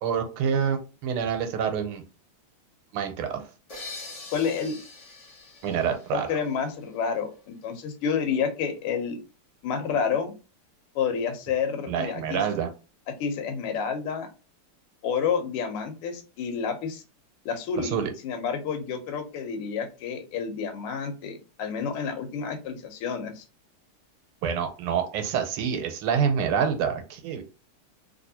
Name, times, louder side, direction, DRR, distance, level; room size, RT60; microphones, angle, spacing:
voice 1, 0.0-2.0 2.9-3.5 5.6-6.3 11.9-12.7 17.8-18.1 24.4-27.4, right 7 dB, 80° right, 7 dB, 1.6 m, -27 dB
sound 1, 3.7-7.3, left 3 dB, 75° left, 0.3 m, -44 dB
voice 2, 4.3-4.8 6.3-9.2 9.6-10.3 11.0-12.4 13.2-14.3 15.0-17.0 17.5-18.0 18.2-23.4, left 6 dB, 90° left, 6 dB, 1.7 m, -29 dB
3.4 x 2.9 x 2.7 m, 0.32 s
omnidirectional pair, 2.4 m